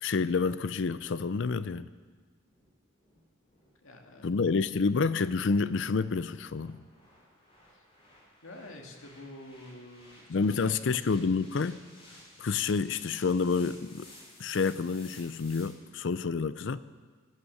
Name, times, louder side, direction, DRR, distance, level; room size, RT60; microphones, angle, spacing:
voice 1, 0.0-1.9 4.2-6.8 10.3-11.8 12.4-14.1 14.4-16.8, left 4 dB, 60° left, 15 dB, 0.5 m, -28 dB
sound 1, 2.0-15.7, left 1 dB, 25° left, 3.6 m, -56 dB
voice 2, 3.8-4.3 7.7-7.8 8.4-10.9, left 1 dB, 80° left, 2 dB, 1.9 m, -48 dB
15.5 x 9.9 x 6.5 m, 1.5 s
head